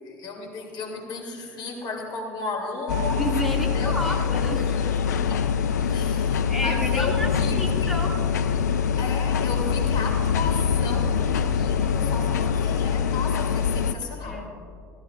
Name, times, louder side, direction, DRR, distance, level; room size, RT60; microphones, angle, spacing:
voice 1, 0.0-3.3 3.7-4.3 4.7-5.5 5.9-8.0 9.0-14.5, left 3 dB, 55° left, 1 dB, 2.9 m, -34 dB
sound 1, 2.9-13.9, left 7 dB, 85° left, 0.4 m, -24 dB
voice 2, 3.2-4.9 5.8-7.3 7.5-8.2 8.7-9.0 14.2-14.5, equal, ahead, -2 dB, 2.5 m, -31 dB
19.0 x 14.5 x 2.6 m, 2.6 s
hypercardioid pair, 65°, 9 cm